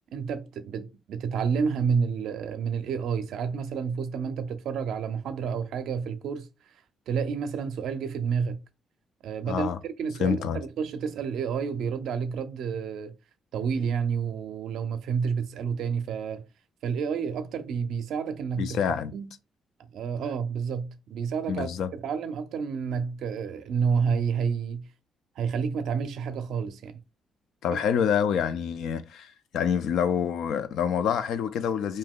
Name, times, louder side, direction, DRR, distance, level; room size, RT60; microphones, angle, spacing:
voice 1, 0.1-6.5 7.1-8.6 9.2-13.1 13.5-16.5 16.8-19.3 19.9-21.7 22.0-24.9 25.4-27.0 27.7-27.8, right 6 dB, 75° right, 0.5 m, -29 dB
voice 2, 9.5-9.8 10.2-10.6 18.6-19.1 21.5-21.9 27.6-32.0, left 8 dB, 80° left, 0.4 m, -27 dB
2.6 x 2.2 x 3.5 m
cardioid pair, 90°, 0 cm